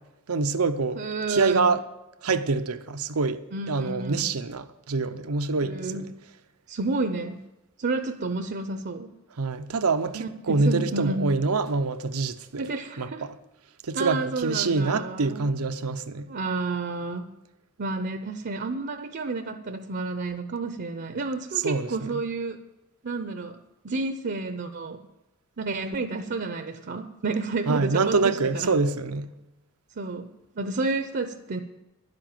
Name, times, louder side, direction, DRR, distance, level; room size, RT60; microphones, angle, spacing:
voice 1, 0.3-1.8 2.2-6.1 9.4-13.3 13.8-16.3 21.6-22.1 27.7-29.3, right 3 dB, 90° right, 0.8 m, -26 dB
voice 2, 1.0-1.8 3.5-4.3 5.6-6.1 6.7-7.4 7.8-9.1 10.1-11.3 12.6-13.3 13.9-15.4 16.3-17.3 17.8-22.6 23.0-23.6 23.8-25.1 25.6-28.7 30.0-30.3 30.5-31.6, right 3 dB, 50° right, 0.7 m, -30 dB
11.0 x 7.8 x 9.0 m
head